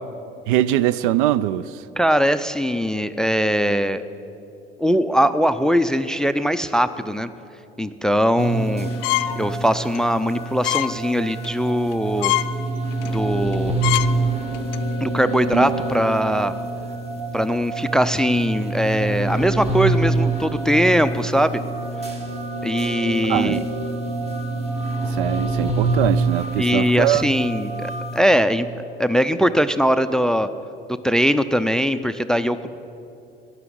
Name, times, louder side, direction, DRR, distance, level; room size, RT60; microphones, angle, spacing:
voice 1, 0.5-1.8 23.3-23.6 25.1-27.3, right 13 dB, 60° right, 0.5 m, -22 dB
voice 2, 2.0-4.0 4.8-7.3 7.8-8.9 9.4-12.3 13.0-13.8 15.0-16.5 17.3-21.6 22.6-23.6 26.6-30.5 31.0-32.7, equal, ahead, 0.4 m, -21 dB
sound 1, 8.4-28.2, right 2 dB, 20° right, 1.9 m, -26 dB
sound 2, 9.0-9.4 9.8-10.0 10.6-10.9 11.3-11.5 11.9-12.0 12.2-12.5 13.0-13.2 13.5-13.6 13.8-14.1 14.5-14.8, left 17 dB, 65° left, 0.5 m, -23 dB
12.5 x 10.5 x 8.7 m
figure-of-eight pair, 60°, 30 cm